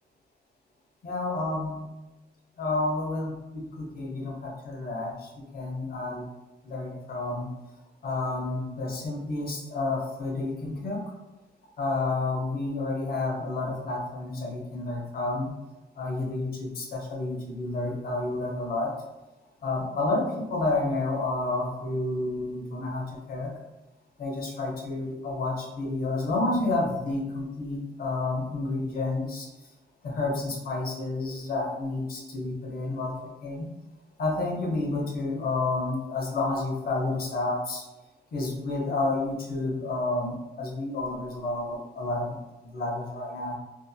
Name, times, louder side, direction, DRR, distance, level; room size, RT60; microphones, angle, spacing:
voice 1, 1.0-1.9 2.6-6.3 6.6-7.5 8.0-11.0 11.8-15.5 16.0-19.0 19.6-23.5 24.2-29.5 30.0-33.7 34.2-37.9 38.3-43.6, left 2 dB, 60° left, 0 dB, 0.7 m, -30 dB
2.6 x 2.6 x 2.3 m, 1.0 s
wide cardioid pair, 175°, 18 cm